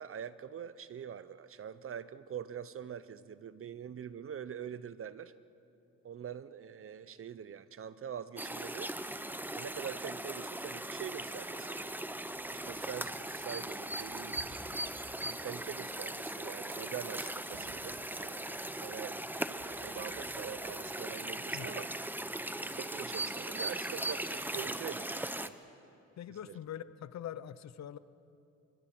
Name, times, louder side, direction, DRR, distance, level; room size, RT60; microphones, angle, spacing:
voice 1, 0.0-5.3 6.0-8.9 9.5-11.8 12.5-14.6 15.3-19.2 19.5-21.9 22.8-25.6 26.4-26.6, right 8 dB, 45° right, 15 dB, 0.9 m, -44 dB
sound 1, 8.4-25.5, right 1 dB, 5° right, 0.9 m, -39 dB
sound 2, 12.3-21.6, right 4 dB, 80° right, 3.4 m, -59 dB
voice 2, 26.2-28.0, left 10 dB, 60° left, 15 dB, 0.9 m, -43 dB
26.0 x 24.5 x 6.2 m, 2.7 s
cardioid pair, 90°, 30 cm